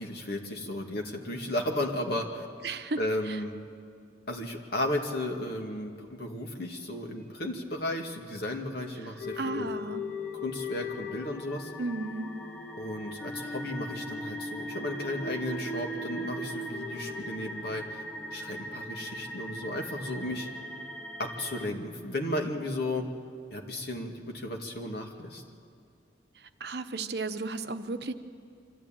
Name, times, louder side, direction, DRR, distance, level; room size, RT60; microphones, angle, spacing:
voice 1, 0.0-2.5 3.0-3.6 4.3-9.7 10.4-11.7 12.8-18.0 18.3-20.5 21.2-23.1 23.5-25.4, left 1 dB, 60° left, 2 dB, 2.3 m, -34 dB
voice 2, 2.6-3.0 3.3-3.4 9.4-10.0 11.8-12.3 26.6-28.1, right 3 dB, 60° right, 8 dB, 1.0 m, -34 dB
sound 1, 8.5-21.7, right 1 dB, 10° left, 0.7 m, -42 dB
sound 2, 9.2-18.4, left 2 dB, 80° left, 1.4 m, -39 dB
25.0 x 14.0 x 9.0 m, 2.3 s
head